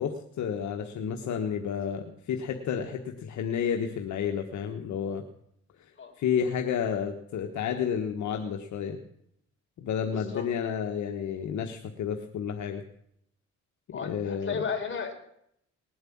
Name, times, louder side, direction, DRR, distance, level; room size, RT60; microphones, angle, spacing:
voice 1, 0.0-5.2 5.8-5.9 6.2-9.0 9.8-12.8 13.9-14.6, left 7 dB, 70° left, 4 dB, 1.4 m, -31 dB
voice 2, 10.1-10.4 13.9-15.1, left 5 dB, 40° left, 3 dB, 4.1 m, -34 dB
19.5 x 7.9 x 8.6 m, 0.73 s
cardioid pair, 90°, 30 cm